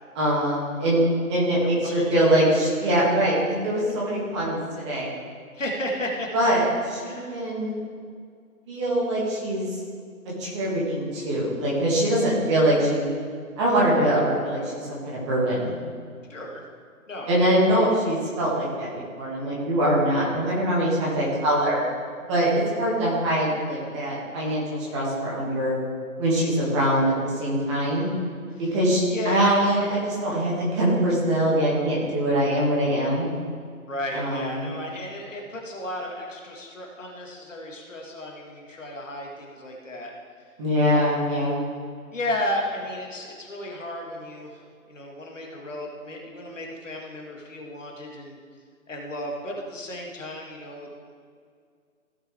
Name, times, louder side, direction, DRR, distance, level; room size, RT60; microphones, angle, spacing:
voice 1, 0.2-1.0 1.3-5.1 6.3-7.8 8.7-9.8 10.4-13.1 13.6-15.8 17.3-21.9 22.3-25.7 26.2-28.1 28.7-33.3 34.1-34.7 40.6-41.6, right 1 dB, 20° right, -6 dB, 2.2 m, -23 dB
voice 2, 1.6-2.4 2.8-3.0 5.5-6.3 7.0-7.5 16.3-16.6 17.1-17.4 17.7-17.9 28.5-28.8 29.1-29.6 33.9-40.1 40.9-41.1 42.1-44.6 44.9-48.4 48.9-50.9, left 1 dB, 55° left, 0 dB, 2.0 m, -33 dB
16.0 x 6.7 x 3.5 m, 2.1 s
figure-of-eight pair, 140°, 44 cm